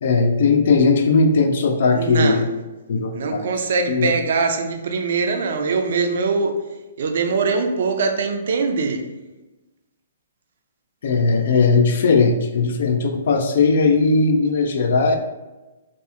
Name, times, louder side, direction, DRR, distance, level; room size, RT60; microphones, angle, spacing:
voice 1, 0.0-2.5 2.9-3.5 3.9-4.1 11.0-15.2, left 4 dB, 60° left, 5 dB, 0.4 m, -18 dB
voice 2, 1.9-2.4 3.1-6.5 7.0-9.0, right 4 dB, 60° right, 5 dB, 0.4 m, -22 dB
2.7 x 2.3 x 2.4 m, 1.1 s
figure-of-eight pair, 125°, 0 cm